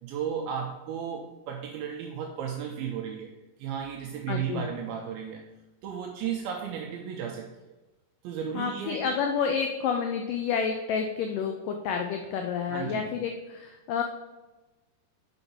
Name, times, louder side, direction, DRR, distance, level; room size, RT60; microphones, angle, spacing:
voice 1, 0.0-3.3 3.6-5.5 5.8-7.5 8.2-9.2 12.7-13.1, right 8 dB, 80° right, 2 dB, 2.3 m, -34 dB
voice 2, 4.3-4.7 8.5-14.0, left 6 dB, 85° left, 4 dB, 1.9 m, -29 dB
6.8 x 5.0 x 5.4 m, 1.1 s
omnidirectional pair, 4.6 m